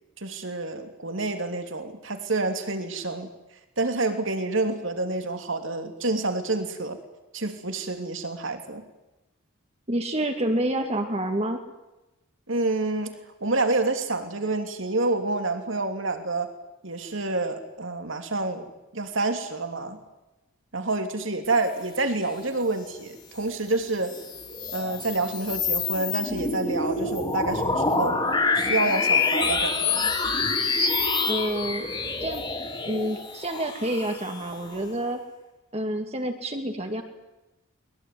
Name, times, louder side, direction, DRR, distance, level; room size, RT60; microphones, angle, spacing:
voice 1, 0.2-3.3 3.8-7.0 7.3-8.8 12.5-16.5 16.8-18.7 18.9-20.0 20.7-24.1 24.7-28.2 28.5-30.1, right 2 dB, 60° right, 6 dB, 3.2 m, -28 dB
voice 2, 9.9-11.6 31.3-31.9 32.2-32.4 32.8-35.2 35.7-37.0, right 1 dB, 30° right, 5 dB, 2.5 m, -28 dB
sound 1, 23.9-34.8, left 4 dB, 25° left, 3.5 m, -27 dB
22.5 x 21.5 x 9.6 m, 0.99 s
head